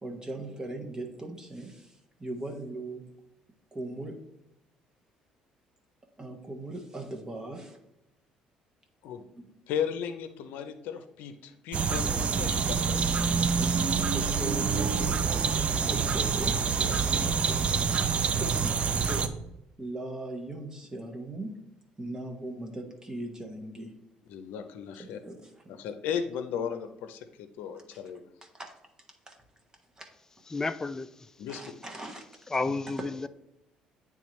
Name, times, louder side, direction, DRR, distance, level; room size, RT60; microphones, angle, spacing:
voice 1, 0.0-3.0 3.7-4.2 6.2-7.8 9.4-9.5 13.5-17.7 18.2-19.3 19.8-21.6 22.0-24.0 25.0-25.8 27.9-28.0 28.4-28.7 29.3-29.4 30.0-30.1 31.5-32.3 32.7-33.1, right 2 dB, 25° right, 1.1 m, -39 dB
voice 2, 9.7-13.3 24.3-25.2 25.7-28.3 31.4-31.6, left 8 dB, 75° left, 0.6 m, -36 dB
sound 1, 11.7-19.3, right 5 dB, 45° right, 0.5 m, -27 dB
voice 3, 30.5-31.1 32.5-33.3, left 3 dB, 20° left, 0.3 m, -31 dB
8.5 x 3.6 x 3.1 m
supercardioid pair, 65°, 3 cm